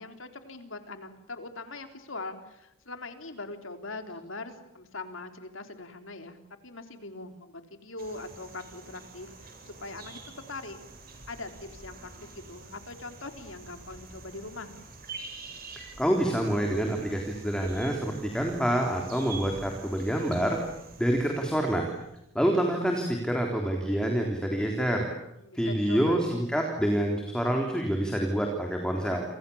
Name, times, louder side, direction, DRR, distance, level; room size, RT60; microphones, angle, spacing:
voice 1, 0.0-6.4 6.6-10.8 11.3-14.7 25.4-26.4, left 3 dB, 75° left, 7 dB, 3.6 m, -41 dB
Redwing Blackbirds, 8.0-22.2, right 3 dB, 45° right, 7.9 m, -47 dB
voice 2, 15.7-20.6 21.0-21.9 22.4-25.1 25.5-29.2, right 1 dB, 5° left, 1 dB, 3.7 m, -27 dB
30.0 x 27.0 x 7.2 m, 0.86 s
head